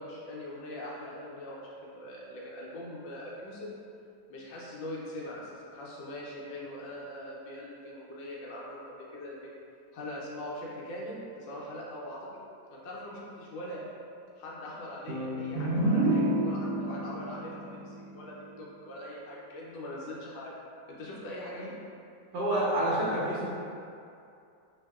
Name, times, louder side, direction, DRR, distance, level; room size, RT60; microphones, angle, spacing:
voice 1, 0.0-3.7 4.3-9.5 9.9-12.3 12.7-13.8 14.4-17.6 17.8-20.5 20.9-21.7, left 1 dB, 80° left, -5 dB, 1.3 m, -42 dB
sound 1, 15.1-18.8, right 1 dB, 75° right, 0.8 m, -30 dB
voice 2, 22.3-23.5, right 1 dB, 60° right, -10 dB, 1.6 m, -28 dB
3.5 x 2.6 x 2.3 m, 2.5 s
omnidirectional pair, 2.1 m